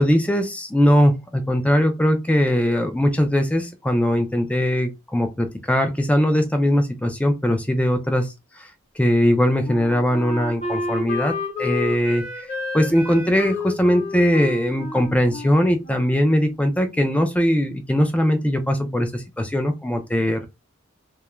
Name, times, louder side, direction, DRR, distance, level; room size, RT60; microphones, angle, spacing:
voice 1, 0.0-8.7 9.0-11.3 11.6-12.5 12.7-20.5, equal, 5° left, 0.3 m, -20 dB
Wind instrument woodwind instrument, 9.2-16.7, left 2 dB, 30° left, 0.8 m, -31 dB
2.3 x 2.1 x 3.0 m
head